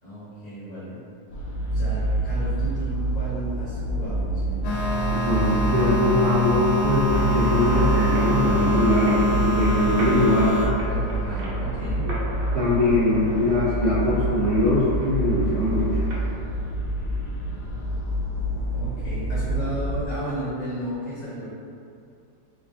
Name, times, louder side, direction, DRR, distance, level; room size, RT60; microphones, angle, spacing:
voice 1, 0.0-1.0 1.7-4.8 10.2-10.5 10.9-12.1 18.7-21.5, equal, 50° left, -10 dB, 1.5 m, -34 dB
sound 1, 1.3-20.0, right 1 dB, 65° left, 0.8 m, -27 dB
sound 2, 4.6-10.7, left 1 dB, 80° left, 1.3 m, -24 dB
voice 2, 5.0-10.5 12.0-12.1 12.5-15.9, left 1 dB, 60° right, -11 dB, 0.8 m, -22 dB
sound 3, 7.1-16.3, right 1 dB, 80° right, 1.5 m, -36 dB
3.6 x 2.4 x 3.3 m, 2.5 s
omnidirectional pair, 2.0 m